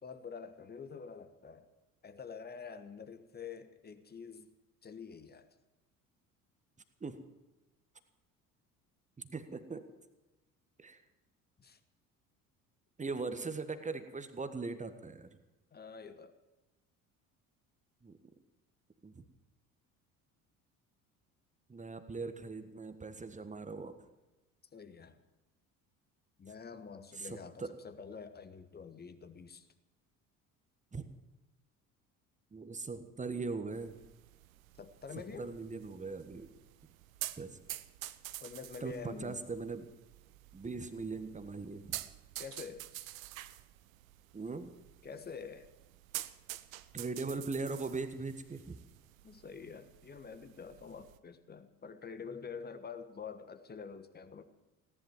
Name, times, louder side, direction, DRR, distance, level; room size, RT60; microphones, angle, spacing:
voice 1, 0.0-1.6 2.0-4.5 4.8-5.5 11.6-11.8 15.7-16.3 24.7-25.2 26.4-29.7 34.8-35.5 38.4-39.4 42.4-43.1 45.0-45.7 49.2-54.5, left 6 dB, 20° left, 11 dB, 1.4 m, -47 dB
voice 2, 9.2-9.8 10.8-11.0 13.0-15.3 18.0-18.2 19.0-19.2 21.7-24.0 27.1-27.7 30.9-31.0 32.5-34.0 35.4-36.5 37.4-37.6 38.8-39.9 40.5-42.0 44.3-44.7 46.9-48.8, right 4 dB, 15° right, 10 dB, 1.5 m, -40 dB
sound 1, 33.7-51.2, right 15 dB, 65° right, 0.8 m, -48 dB
17.5 x 11.0 x 7.4 m, 1.1 s
figure-of-eight pair, 60°, 43 cm